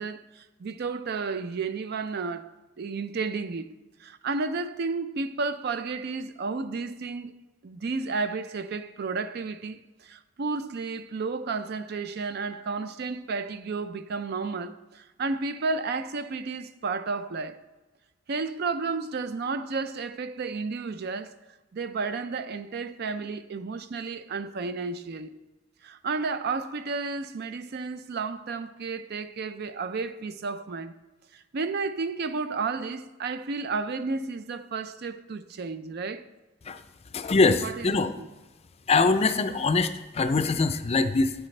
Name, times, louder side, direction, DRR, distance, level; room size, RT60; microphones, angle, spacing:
voice 1, 0.0-7.4 7.6-17.6 18.3-21.4 21.7-25.3 25.8-30.9 31.3-36.3 37.6-38.3, right 4 dB, 55° right, 0.4 m, -32 dB
voice 2, 37.1-38.1 38.9-41.3, left 3 dB, 30° left, 0.5 m, -23 dB
10.5 x 9.8 x 3.3 m
head